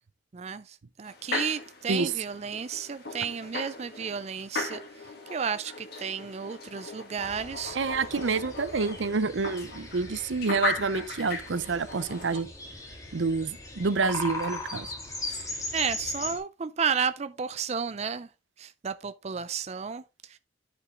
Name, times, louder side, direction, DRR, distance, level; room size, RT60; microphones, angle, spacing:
voice 1, 0.3-7.8 15.7-18.3 18.6-20.4, right 6 dB, 35° right, 0.4 m, -32 dB
sound 1, 1.0-12.4, left 3 dB, 55° left, 2.1 m, -38 dB
sound 2, 7.2-16.4, left 2 dB, 15° left, 2.1 m, -39 dB
voice 2, 7.7-12.5 13.1-14.9 15.3-15.5, right 4 dB, 80° right, 0.6 m, -28 dB
9.8 x 5.2 x 3.7 m
head